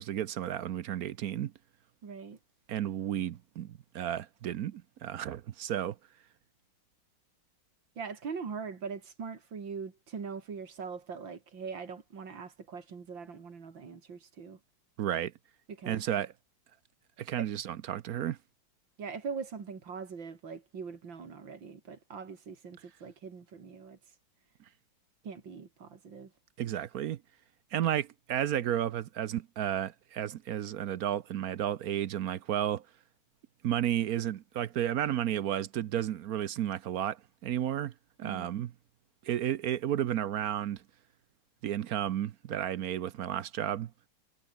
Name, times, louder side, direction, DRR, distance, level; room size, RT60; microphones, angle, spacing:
voice 1, 0.0-1.5 2.7-6.0 15.0-15.3 15.9-16.3 17.2-18.4 26.6-27.2 27.7-32.8 33.6-37.9 38.2-38.7 39.2-40.8 41.6-43.9, right 11 dB, 65° right, 1.0 m, -32 dB
voice 2, 2.0-2.4 8.0-14.6 15.7-16.0 17.4-17.5 19.0-24.0 25.2-26.3 38.2-38.5, right 5 dB, 85° right, 3.4 m, -42 dB
omnidirectional pair, 2.0 m